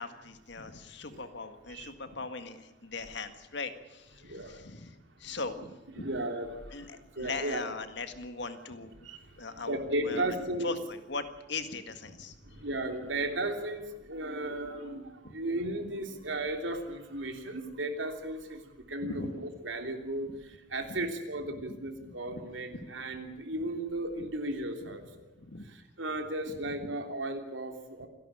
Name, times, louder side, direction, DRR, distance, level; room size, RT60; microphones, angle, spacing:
voice 1, 0.0-4.9 5.2-6.1 6.7-8.9 9.4-9.8 10.0-12.3 15.2-15.3 19.0-19.3 21.7-22.4 25.4-25.7 26.5-26.9 28.0-28.1, left 3 dB, 65° left, 9 dB, 1.8 m, -40 dB
voice 2, 4.2-4.6 5.2-5.3 6.0-7.6 9.0-10.8 12.4-25.3 25.6-28.1, right 1 dB, 85° right, 5 dB, 3.2 m, -35 dB
27.5 x 11.5 x 9.9 m, 1.0 s
head